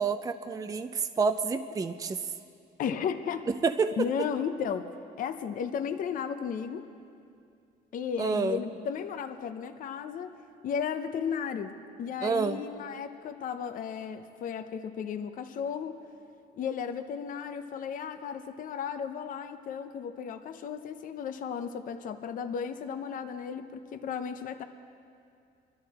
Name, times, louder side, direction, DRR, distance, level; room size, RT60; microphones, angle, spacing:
voice 1, 0.0-2.2 3.6-4.0 8.2-8.6 12.2-12.6, right 5 dB, 20° right, 9 dB, 0.5 m, -28 dB
voice 2, 2.8-3.5 4.0-4.9 5.2-6.9 7.9-10.3 10.6-16.0 16.6-24.6, left 7 dB, 55° left, 8 dB, 0.7 m, -34 dB
23.0 x 12.5 x 4.3 m, 2.5 s
cardioid pair, 110°, 17 cm